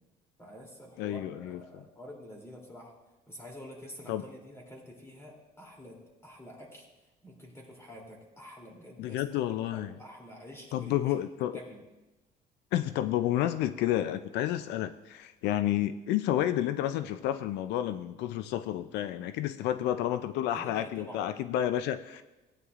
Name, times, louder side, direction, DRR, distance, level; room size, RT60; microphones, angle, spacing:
voice 1, 0.4-2.9 3.3-6.9 7.2-9.2 9.7-11.2 11.5-11.8 20.5-21.5, equal, 15° left, -1 dB, 2.8 m, -48 dB
voice 2, 1.0-1.8 4.1-4.2 9.0-9.9 10.7-11.6 12.7-22.2, left 12 dB, 85° left, 11 dB, 0.4 m, -30 dB
16.0 x 9.5 x 2.5 m, 1.1 s
cardioid pair, 110°, 17 cm